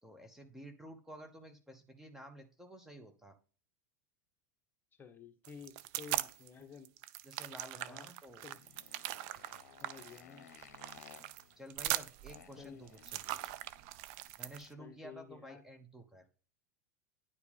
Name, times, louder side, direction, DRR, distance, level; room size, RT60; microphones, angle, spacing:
voice 1, 0.0-3.3 7.2-8.5 11.6-13.6 14.4-16.3, right 1 dB, 5° right, 5 dB, 1.0 m, -52 dB
voice 2, 5.0-6.9 7.8-8.1 8.4-8.6 9.8-10.5 12.6-12.8 14.8-15.6, left 6 dB, 20° left, 8 dB, 1.1 m, -52 dB
sound 1, 5.4-6.5 6.8-14.7, right 15 dB, 50° right, 0.5 m, -40 dB
Motorcycle, 8.3-14.9, left 9 dB, 65° left, 0.8 m, -59 dB
9.7 x 4.7 x 3.5 m, 0.38 s
figure-of-eight pair, 85°, 9 cm